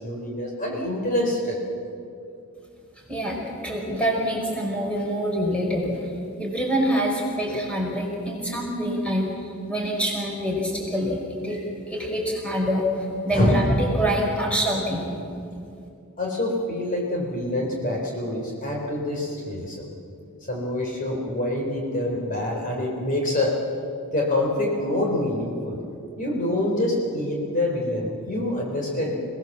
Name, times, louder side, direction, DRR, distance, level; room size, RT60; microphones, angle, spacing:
voice 1, 0.0-1.6 13.3-13.6 16.2-19.8 20.5-23.6 24.1-25.8 26.2-29.1, left 1 dB, 35° left, -1 dB, 4.0 m, -26 dB
voice 2, 3.1-6.1 6.4-15.1, equal, 5° left, -2 dB, 5.3 m, -26 dB
29.0 x 19.0 x 7.4 m, 2.5 s
head